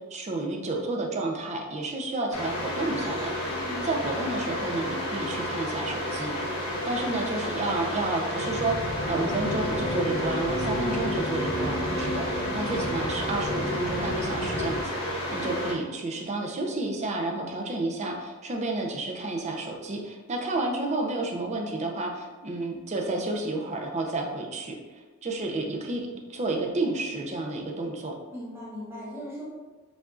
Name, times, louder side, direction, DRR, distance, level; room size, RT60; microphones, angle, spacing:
voice 1, 0.1-3.5 3.8-6.3 6.9-24.8 25.2-26.0 26.3-28.1, right 2 dB, 30° right, 1 dB, 0.6 m, -31 dB
sound 1, 2.3-15.7, equal, 80° left, 1.1 m, -32 dB
voice 2, 3.5-3.9 12.1-12.5 15.3-15.6 28.3-29.4, equal, 10° right, -7 dB, 0.9 m, -39 dB
sound 2, 8.4-14.8, equal, 45° left, 0.6 m, -32 dB
6.9 x 2.6 x 2.4 m, 1.3 s
head